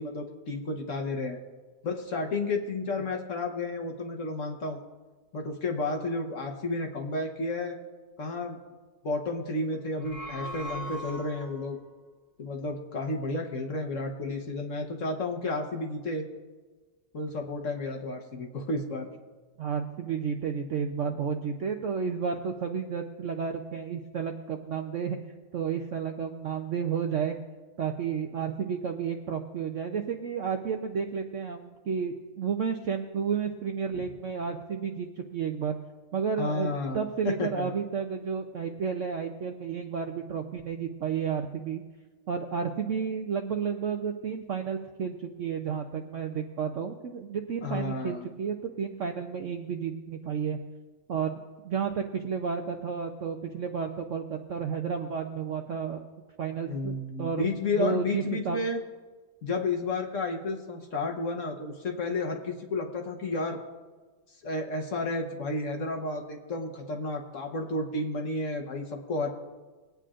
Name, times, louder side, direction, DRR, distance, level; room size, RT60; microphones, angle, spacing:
voice 1, 0.0-1.4 1.8-4.8 5.3-7.8 8.2-8.6 9.0-11.8 12.4-16.3 17.1-19.1 33.9-34.0 36.4-37.1 37.4-37.7 47.6-48.3 56.7-58.8 59.4-63.6 64.4-69.3, left 2 dB, 50° left, 2 dB, 1.3 m, -32 dB
sound 1, 9.8-11.8, equal, 85° left, 1.7 m, -39 dB
voice 2, 19.6-25.2 25.5-27.4 27.8-35.7 36.1-41.8 42.3-50.6 51.1-51.4 51.6-56.0 56.4-57.5 57.8-58.6, right 6 dB, 60° right, 4 dB, 0.8 m, -31 dB
22.0 x 9.2 x 2.5 m, 1.3 s
omnidirectional pair, 1.9 m